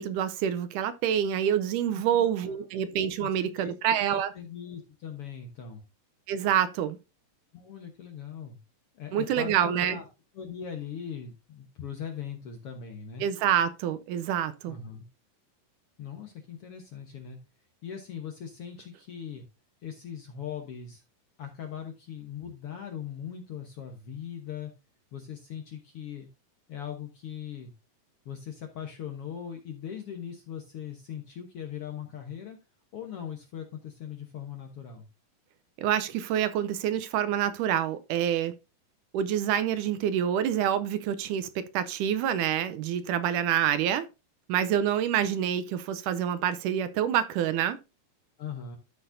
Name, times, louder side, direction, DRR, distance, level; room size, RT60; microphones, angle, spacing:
voice 1, 0.0-4.3 6.3-7.0 9.1-10.0 13.2-14.8 35.8-38.5 39.1-44.0 44.5-47.8, right 9 dB, 80° right, 2.1 m, -27 dB
voice 2, 1.9-2.6 3.2-3.7 4.3-5.8 7.5-8.6 8.9-10.1 10.3-13.2 14.7-15.0 16.0-17.4 17.8-19.4 19.8-21.0 21.4-24.7 25.1-26.3 26.7-27.7 28.2-32.6 32.9-35.1 48.4-48.8, left 8 dB, 65° left, 1.5 m, -40 dB
13.0 x 6.0 x 2.6 m
omnidirectional pair, 3.9 m